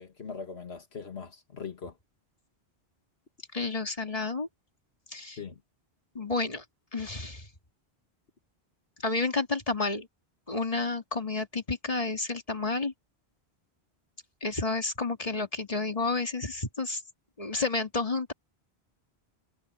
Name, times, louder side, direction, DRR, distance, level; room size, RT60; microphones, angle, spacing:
voice 1, 0.0-1.9 5.4-5.6, left 5 dB, 80° left, 2.0 m, -40 dB
voice 2, 3.5-4.5 5.1-5.4 6.1-6.6 6.9-7.5 9.0-10.1 10.5-12.9 14.4-17.0 17.4-18.3, left 3 dB, 35° left, 2.7 m, -30 dB
omnidirectional pair, 1.1 m